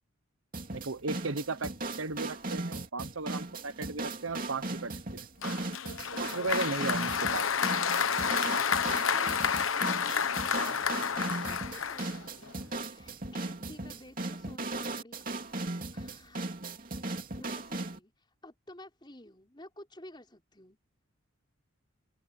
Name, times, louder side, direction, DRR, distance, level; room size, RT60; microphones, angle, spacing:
sound 1, 0.5-18.0, right 2 dB, 40° right, 2.9 m, -37 dB
voice 1, 0.7-1.7 2.0-4.9 5.4-5.6 6.1-7.5, right 3 dB, 75° right, 1.1 m, -35 dB
Applause, 5.4-12.5, left 6 dB, 75° left, 1.1 m, -30 dB
voice 2, 9.0-15.5 15.9-16.5 17.4-20.8, left 1 dB, 20° left, 5.3 m, -52 dB
open air
head